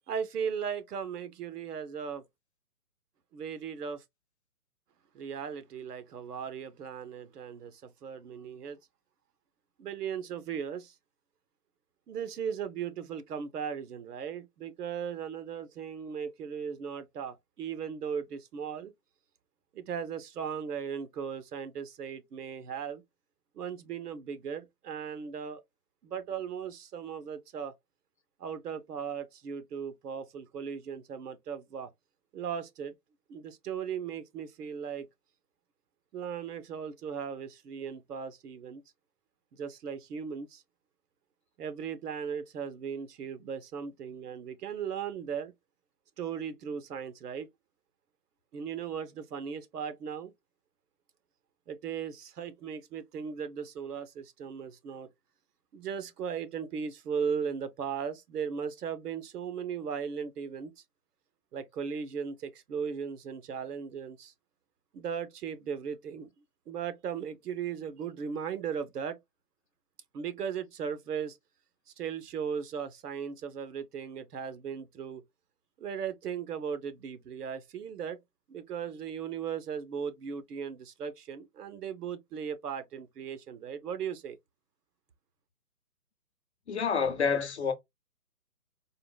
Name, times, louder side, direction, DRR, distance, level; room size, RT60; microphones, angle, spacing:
voice 1, 0.1-2.2 3.3-4.0 5.1-8.8 9.8-10.9 12.1-18.9 19.7-23.0 23.5-25.6 26.0-27.7 28.4-31.9 32.3-32.9 33.3-35.1 36.1-38.8 39.5-40.6 41.6-45.5 46.2-47.5 48.5-50.3 51.7-55.1 55.7-60.7 61.5-64.3 64.9-66.3 66.7-69.2 70.1-71.4 72.0-75.2 75.8-78.2 78.5-84.4, right 7 dB, 80° right, 0.7 m, -37 dB
voice 2, 86.7-87.7, left 6 dB, 45° left, 0.6 m, -28 dB
3.6 x 2.1 x 2.2 m
hypercardioid pair, 160°, 46 cm